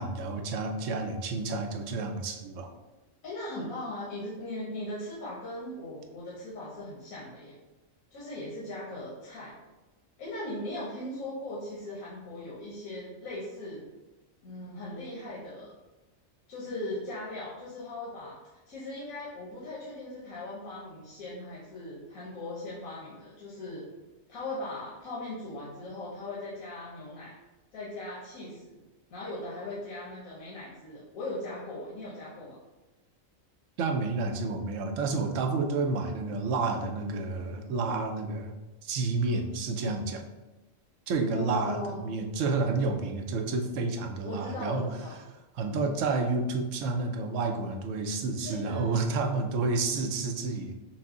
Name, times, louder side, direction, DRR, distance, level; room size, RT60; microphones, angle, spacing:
voice 1, 0.0-2.7 33.8-38.5 38.8-40.2 41.1-44.9 45.5-50.8, right 3 dB, 70° right, 4 dB, 0.9 m, -30 dB
voice 2, 3.2-7.6 8.1-9.5 10.2-13.8 14.4-15.7 16.5-18.4 18.7-23.8 24.3-27.3 27.7-28.8 29.1-32.6 41.3-42.0 44.2-45.2 48.4-48.9, left 1 dB, 85° left, -7 dB, 1.3 m, -39 dB
5.9 x 2.1 x 3.6 m, 1.1 s
omnidirectional pair, 1.4 m